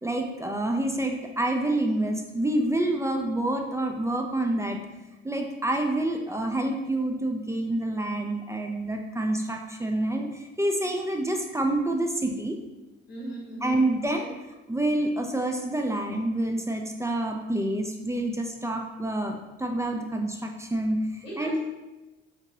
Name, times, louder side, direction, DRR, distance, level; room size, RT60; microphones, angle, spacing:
voice 1, 0.0-4.8 5.2-12.6 13.6-14.3 14.7-21.6, right 1 dB, 10° right, 2 dB, 0.4 m, -27 dB
voice 2, 13.1-13.8 21.2-21.6, right 1 dB, 90° left, -5 dB, 0.9 m, -37 dB
3.5 x 2.9 x 2.8 m, 1.1 s
figure-of-eight pair, 45°, 29 cm